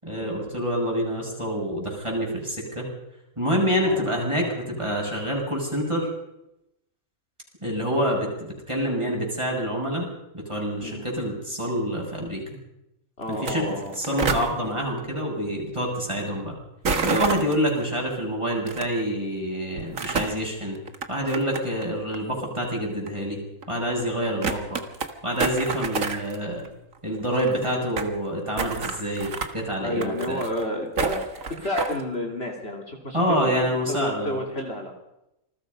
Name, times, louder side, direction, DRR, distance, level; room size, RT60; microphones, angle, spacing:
voice 1, 0.0-2.9 3.4-6.1 7.6-10.1 10.3-12.4 13.3-13.6 14.0-16.6 17.0-20.8 21.1-23.4 23.7-24.8 25.2-26.6 27.0-30.4 33.1-34.4, equal, 20° right, -1 dB, 7.1 m, -27 dB
voice 2, 13.2-13.9 29.8-31.2 31.5-34.9, left 1 dB, 45° left, 1 dB, 3.4 m, -30 dB
sound 1, 13.3-13.5 13.8-14.5 16.8-17.7 18.7-18.8 19.8-20.4 20.9-21.8 22.1-22.2 23.1-23.2 23.6-23.7 24.0-24.1 24.4-25.1 25.4-26.4 26.6-26.7 26.9-27.0 27.2-28.1 28.6-29.5 30.0-30.6 31.0-32.0, right 4 dB, 70° right, 2.0 m, -28 dB
28.0 x 20.5 x 5.4 m, 0.87 s
omnidirectional pair, 1.5 m